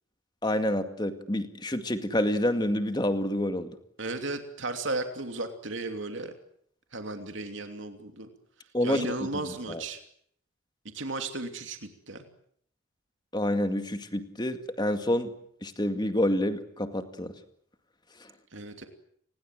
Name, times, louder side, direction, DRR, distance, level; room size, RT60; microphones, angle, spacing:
voice 1, 0.4-3.8 8.7-9.1 9.7-9.8 13.3-15.3 15.6-17.3, left 1 dB, 20° left, 8 dB, 2.1 m, -28 dB
voice 2, 4.0-6.3 6.9-8.3 8.8-10.0 10.9-12.3 18.5-18.9, right 2 dB, 60° right, 6 dB, 2.9 m, -35 dB
30.0 x 20.5 x 7.8 m, 0.66 s
head